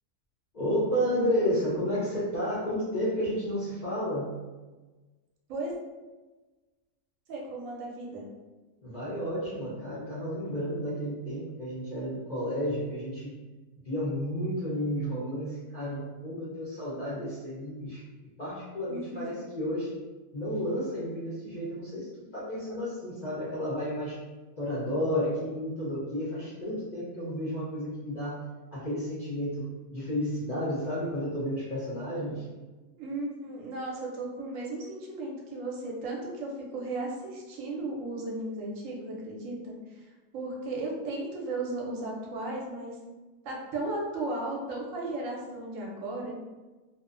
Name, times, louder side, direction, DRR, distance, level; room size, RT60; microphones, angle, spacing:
voice 1, 0.5-4.3 8.8-13.3 13.8-18.0 18.4-19.9 20.3-24.2 24.6-28.4 28.7-32.5, equal, 75° left, -10 dB, 0.4 m, -32 dB
voice 2, 7.3-8.3 18.9-19.2 33.0-40.1 40.3-43.0 43.4-46.3, right 2 dB, 65° right, -2 dB, 0.9 m, -35 dB
2.6 x 2.0 x 2.4 m, 1.2 s
omnidirectional pair, 1.7 m